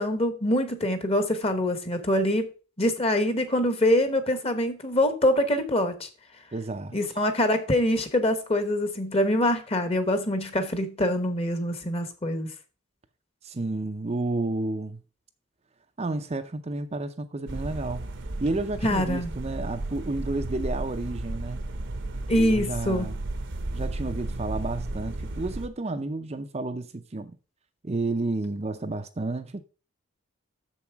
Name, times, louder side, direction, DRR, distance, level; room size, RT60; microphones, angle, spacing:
voice 1, 0.0-2.5 2.8-6.1 6.9-12.5 18.8-19.3 22.3-23.1, left 1 dB, 30° left, 1.1 m, -24 dB
voice 2, 6.5-7.0 13.4-15.0 16.0-18.0 18.4-21.6 22.3-23.2 23.7-27.4 27.8-29.6, right 2 dB, 30° right, 0.5 m, -31 dB
sound 1, 17.5-25.7, right 2 dB, 55° right, 0.8 m, -34 dB
7.1 x 6.9 x 4.6 m
head